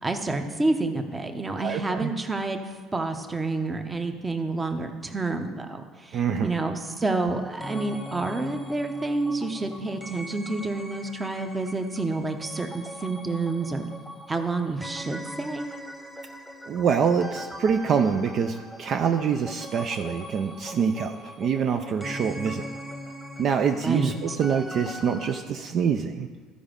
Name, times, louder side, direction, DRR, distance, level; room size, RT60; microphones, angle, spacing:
voice 1, 0.0-2.6 2.9-5.8 6.4-13.9 14.3-15.7 23.8-24.1, right 3 dB, 20° right, 6 dB, 0.9 m, -28 dB
voice 2, 1.6-2.1 6.1-6.6 16.7-22.6 23.4-26.3, right 6 dB, 50° right, 6 dB, 0.5 m, -25 dB
sound 1, 7.1-25.4, equal, ahead, 1.2 m, -41 dB
13.0 x 5.0 x 5.2 m, 1.5 s
cardioid pair, 110°, 0 cm